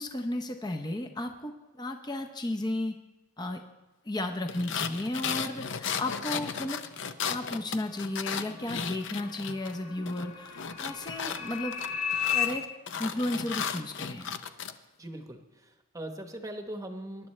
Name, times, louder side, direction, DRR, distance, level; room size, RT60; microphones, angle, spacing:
voice 1, 0.0-2.9 3.4-3.6 4.0-6.8 7.3-11.8 12.3-12.6 13.0-14.4, left 1 dB, 20° left, 4 dB, 0.7 m, -34 dB
sound 1, 4.5-9.8 10.1-14.7, left 6 dB, 55° left, 0.6 m, -35 dB
sound 2, 8.2-12.5, left 9 dB, 75° left, 1.4 m, -34 dB
voice 2, 15.0-17.3, right 1 dB, 15° right, 5 dB, 1.0 m, -40 dB
22.5 x 11.0 x 3.2 m, 1.0 s
head